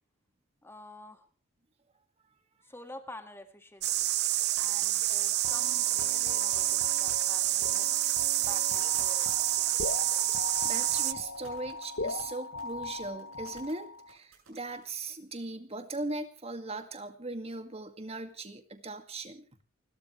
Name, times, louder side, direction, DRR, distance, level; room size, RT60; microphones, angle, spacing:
voice 1, 0.6-1.3 2.6-4.1 4.6-7.9 8.4-10.0, left 1 dB, 10° left, 7 dB, 1.8 m, -49 dB
sound 1, 3.8-11.1, right 14 dB, 55° right, 0.7 m, -28 dB
sound 2, 4.0-14.9, right 5 dB, 85° right, 7.0 m, -59 dB
sound 3, 5.4-14.2, left 4 dB, 60° left, 1.0 m, -40 dB
voice 2, 10.6-19.4, right 2 dB, 30° right, 7 dB, 2.0 m, -39 dB
29.5 x 13.0 x 3.2 m, 0.36 s
head